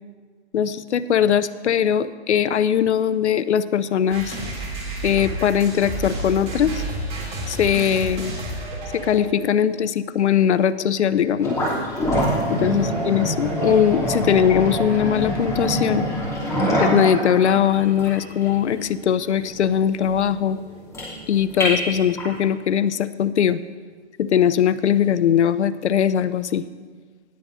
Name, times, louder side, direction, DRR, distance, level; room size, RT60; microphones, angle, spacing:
voice 1, 0.5-4.4 5.0-6.8 7.5-8.3 8.9-11.6 12.5-16.0 16.8-20.6 21.3-23.6 24.2-26.6, left 9 dB, 75° left, 15 dB, 0.6 m, -20 dB
sound 1, 4.1-9.4, right 1 dB, 15° right, 1.8 m, -31 dB
sound 2, 11.4-22.4, equal, 10° left, 2.7 m, -25 dB
18.5 x 7.6 x 2.6 m, 1.5 s
hypercardioid pair, 140°, 34 cm